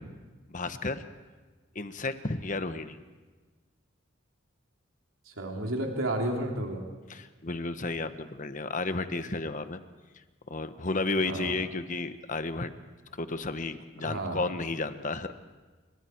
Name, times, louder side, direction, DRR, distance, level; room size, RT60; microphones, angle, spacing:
voice 1, 0.5-1.0 1.7-3.0 7.1-9.8 10.5-12.7 13.1-15.3, left 3 dB, 40° left, 10 dB, 1.2 m, -32 dB
voice 2, 5.3-6.8 11.1-11.6 14.0-14.5, right 1 dB, 85° right, 1 dB, 3.2 m, -32 dB
29.0 x 25.5 x 4.6 m, 1.4 s
head